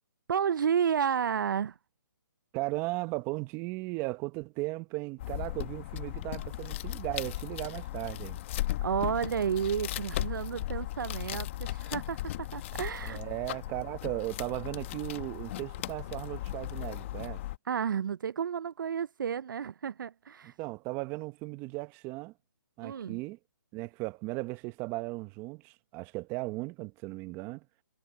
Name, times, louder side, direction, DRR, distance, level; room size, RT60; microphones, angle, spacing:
voice 1, 0.3-1.7 8.8-13.2 17.7-20.5 22.8-23.2, right 8 dB, 70° right, 0.5 m, -31 dB
voice 2, 2.5-8.4 13.0-17.4 20.4-22.3 22.8-23.4 23.7-27.6, right 22 dB, 20° right, 1.1 m, -36 dB
sound 1, 5.2-17.6, left 15 dB, 35° left, 1.5 m, -37 dB
hypercardioid pair, 155°, 11 cm